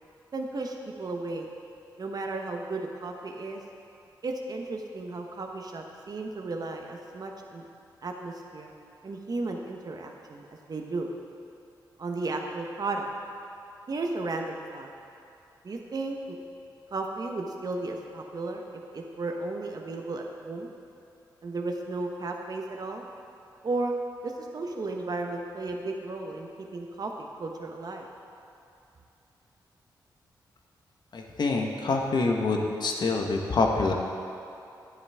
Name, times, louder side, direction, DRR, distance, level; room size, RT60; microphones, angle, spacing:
voice 1, 0.3-1.5 2.0-3.6 4.2-7.6 8.0-8.7 9.0-10.4 10.7-11.1 12.0-13.0 13.9-14.9 15.6-16.4 16.9-20.7 21.4-23.0 23.6-24.0 24.2-28.1, right 3 dB, 50° right, 2 dB, 1.1 m, -34 dB
voice 2, 31.1-33.9, left 3 dB, 60° left, 1 dB, 1.3 m, -26 dB
11.0 x 9.6 x 3.6 m, 2.7 s
cardioid pair, 55°, 8 cm